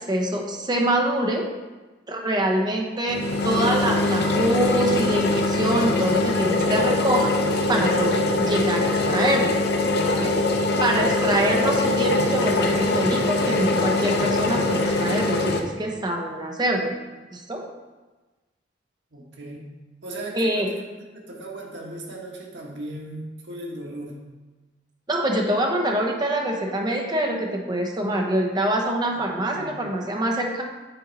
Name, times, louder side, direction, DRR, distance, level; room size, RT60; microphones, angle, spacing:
voice 1, 0.0-1.4 2.1-7.3 7.7-9.6 10.0-10.4 10.8-16.9 17.3-17.6 20.3-20.7 25.1-30.6, right 1 dB, 25° right, 1 dB, 0.9 m, -25 dB
sound 1, 3.1-15.6, left 2 dB, 65° left, 0.7 m, -22 dB
voice 2, 19.1-19.7 20.0-20.9 21.1-24.2 29.1-29.2 29.5-29.8, right 1 dB, 85° right, -1 dB, 1.5 m, -37 dB
7.9 x 4.6 x 4.1 m, 1.2 s
head